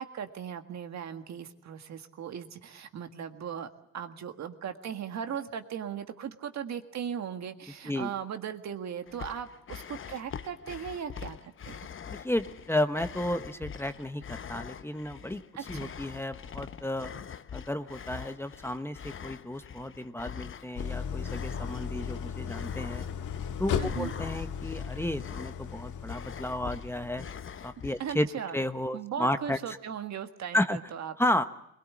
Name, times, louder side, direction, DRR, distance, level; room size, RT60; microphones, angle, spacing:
voice 1, 0.0-3.7 3.9-11.9 15.5-15.9 23.8-24.1 28.0-28.6 28.9-31.2, right 8 dB, 65° right, 7 dB, 1.8 m, -38 dB
sound 1, 9.1-28.3, left 8 dB, 40° left, 0.9 m, -44 dB
voice 2, 12.1-15.4 15.7-17.1 17.5-23.1 23.6-27.2 27.6-28.3 28.5-29.6 30.5-30.8 31.2-31.4, left 1 dB, 10° left, 9 dB, 1.1 m, -32 dB
Idling, 20.8-27.8, left 7 dB, 80° left, 1.6 m, -36 dB
21.5 x 19.5 x 8.6 m, 0.79 s
cardioid pair, 90°, 30 cm